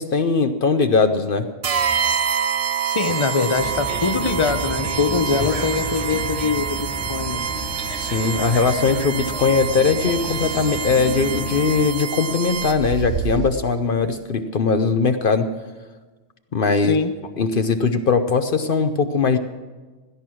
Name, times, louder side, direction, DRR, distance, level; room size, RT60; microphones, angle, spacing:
voice 1, 0.0-1.5 5.4-5.5 8.0-15.5 16.5-17.0 17.4-19.4, left 4 dB, 55° left, 8 dB, 0.9 m, -20 dB
sound 1, 1.6-13.0, right 7 dB, 45° right, 0.5 m, -27 dB
voice 2, 2.8-7.4 16.9-17.1, left 5 dB, 30° left, 9 dB, 0.8 m, -23 dB
sound 2, 3.5-11.9, equal, 30° right, 1.5 m, -32 dB
sound 3, 5.7-6.3 6.6-6.7 7.2-7.6 8.5-8.6 10.0-10.6 12.2-13.5, right 9 dB, 70° right, 1.1 m, -30 dB
17.0 x 12.0 x 6.2 m, 1.3 s
omnidirectional pair, 1.1 m